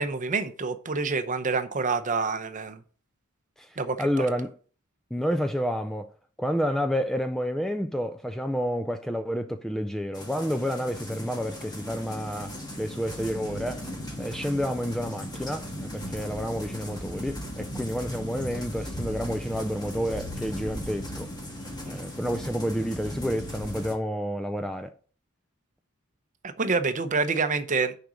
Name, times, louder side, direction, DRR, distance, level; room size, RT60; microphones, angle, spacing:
voice 1, 0.0-2.8 3.8-4.3 21.8-22.0 26.4-27.9, right 4 dB, 35° right, 0.7 m, -27 dB
voice 2, 3.6-4.5 5.1-6.1 6.4-13.9 14.2-21.3 21.9-24.9, equal, ahead, 0.3 m, -29 dB
sound 1, 10.1-24.0, equal, 20° left, 1.6 m, -37 dB
6.6 x 5.1 x 6.2 m
head